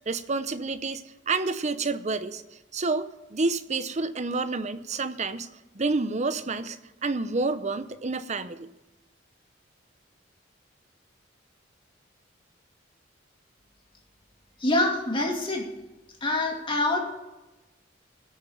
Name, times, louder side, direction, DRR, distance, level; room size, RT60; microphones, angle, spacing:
voice 1, 0.1-2.4 2.7-8.7, right 3 dB, 40° right, 12 dB, 0.7 m, -29 dB
voice 2, 14.6-15.7 16.2-17.0, left 2 dB, 25° left, 0 dB, 2.6 m, -25 dB
17.0 x 6.7 x 6.4 m, 1.0 s
head